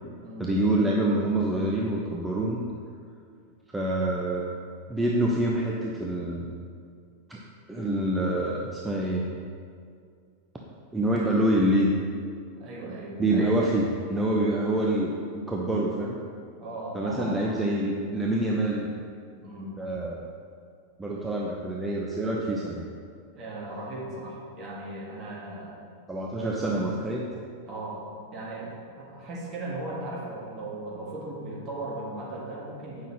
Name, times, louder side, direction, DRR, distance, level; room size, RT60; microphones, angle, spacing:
voice 1, 0.4-2.6 3.7-4.5 4.9-6.5 7.3-7.4 7.7-9.3 10.9-11.9 13.2-16.2 16.9-18.9 19.8-20.3 21.0-22.8 26.1-27.2, right 1 dB, 10° right, -3 dB, 0.6 m, -26 dB
voice 2, 12.6-13.2 16.6-17.3 19.3-19.7 23.3-25.8 27.7-28.0 28.3-33.1, right 2 dB, 30° right, -4 dB, 1.7 m, -37 dB
8.0 x 5.6 x 3.1 m, 2.2 s
figure-of-eight pair, 90°, 0 cm